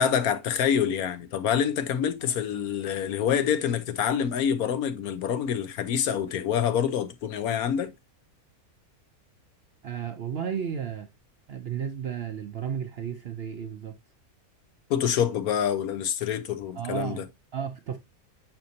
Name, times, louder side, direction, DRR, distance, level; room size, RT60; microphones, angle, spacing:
voice 1, 0.0-7.9 14.9-17.2, left 8 dB, 75° left, 1.2 m, -26 dB
voice 2, 9.8-11.1 11.5-14.0 16.7-17.3 17.5-18.0, right 8 dB, 60° right, 0.6 m, -33 dB
6.8 x 5.3 x 2.7 m
omnidirectional pair, 1.6 m